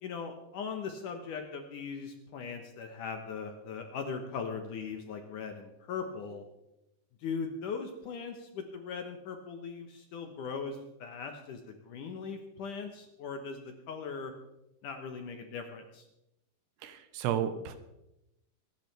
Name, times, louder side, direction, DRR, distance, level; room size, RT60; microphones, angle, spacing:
voice 1, 0.0-6.4 7.2-14.3 14.8-16.1, left 5 dB, 65° left, 5 dB, 2.2 m, -39 dB
voice 2, 16.8-17.8, right 9 dB, 80° right, 9 dB, 3.2 m, -32 dB
25.5 x 11.0 x 3.4 m, 0.89 s
omnidirectional pair, 4.8 m